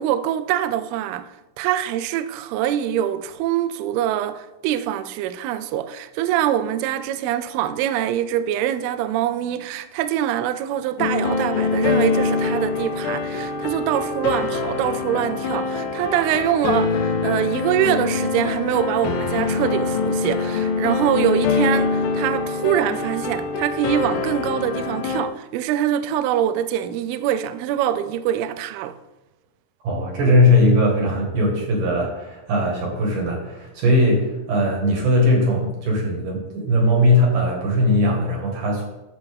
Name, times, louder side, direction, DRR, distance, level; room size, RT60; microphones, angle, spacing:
voice 1, 0.0-29.0, right 11 dB, 85° right, 2.2 m, -24 dB
sound 1, 11.0-25.3, left 4 dB, 80° left, 2.8 m, -24 dB
voice 2, 29.8-38.9, left 1 dB, 55° right, 2.7 m, -19 dB
12.5 x 7.5 x 3.5 m
omnidirectional pair, 5.0 m